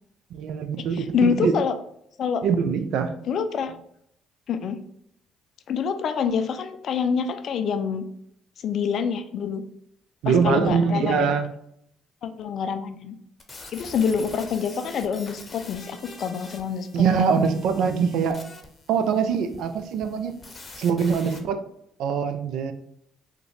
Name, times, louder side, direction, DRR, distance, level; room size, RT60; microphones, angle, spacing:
voice 1, 0.3-1.5 2.4-3.1 10.2-11.5 16.9-18.4 18.9-20.4 20.8-21.6 22.0-22.7, right 6 dB, 70° right, 8 dB, 0.4 m, -23 dB
voice 2, 0.9-1.7 2.2-2.4 3.2-3.8 4.5-4.8 5.7-8.1 8.6-9.6 10.3-11.3 12.2-13.1 13.7-17.4, left 6 dB, 60° left, 9 dB, 0.4 m, -26 dB
sound 1, 13.4-21.4, left 3 dB, 30° left, 0.7 m, -45 dB
3.6 x 2.1 x 3.1 m, 0.71 s
hypercardioid pair, 60°, 0 cm